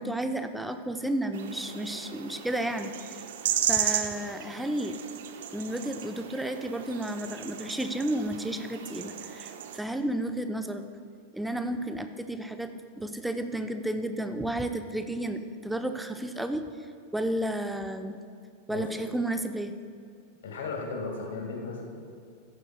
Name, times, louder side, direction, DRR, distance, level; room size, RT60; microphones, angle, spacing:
voice 1, 0.0-3.2 3.7-5.0 5.5-10.8 11.3-18.2 18.7-19.7, right 1 dB, 5° right, 8 dB, 0.6 m, -32 dB
sound 1, 1.3-9.8, right 10 dB, 55° right, 0.6 m, -34 dB
voice 2, 20.4-21.8, left 4 dB, 60° left, 1 dB, 1.7 m, -35 dB
15.0 x 10.5 x 2.2 m, 2.2 s
figure-of-eight pair, 90°, 0 cm